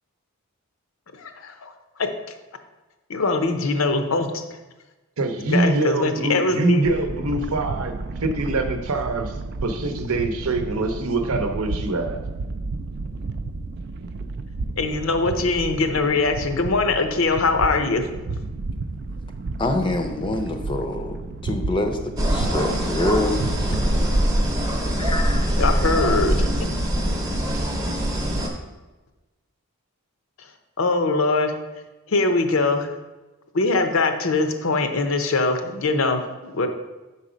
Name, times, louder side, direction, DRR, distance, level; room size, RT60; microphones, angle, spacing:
voice 1, 1.2-1.7 2.0-2.1 3.1-4.4 5.5-6.9 14.8-18.1 25.6-26.5 30.4-30.5 30.8-31.6 32.1-32.9 33.5-36.7, left 3 dB, 65° left, 7 dB, 0.6 m, -22 dB
voice 2, 5.2-12.2, right 2 dB, 75° right, 6 dB, 0.7 m, -24 dB
sound 1, 6.8-24.3, right 3 dB, 50° right, 0.3 m, -32 dB
voice 3, 19.6-21.2 21.4-23.9 25.0-25.6, left 1 dB, 20° left, 5 dB, 0.5 m, -26 dB
sound 2, 22.2-28.5, equal, 15° right, 0.7 m, -23 dB
6.0 x 4.2 x 5.0 m, 1.1 s
head